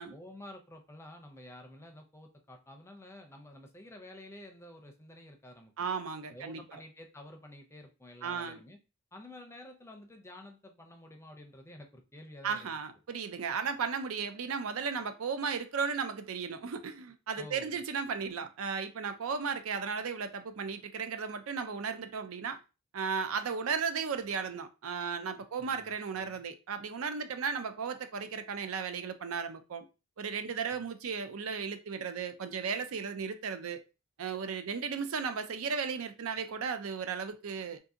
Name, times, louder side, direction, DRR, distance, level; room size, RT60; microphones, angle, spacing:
voice 1, 0.0-5.7 6.3-8.8 9.1-12.8 13.6-13.7 17.4-17.8 25.6-26.4 30.7-30.9, left 1 dB, 15° left, 0.5 m, -50 dB
voice 2, 5.8-6.8 8.2-8.6 12.4-22.6 22.9-29.8 30.2-33.8 34.2-37.8, right 6 dB, 80° right, 0.5 m, -35 dB
2.6 x 2.6 x 3.6 m
head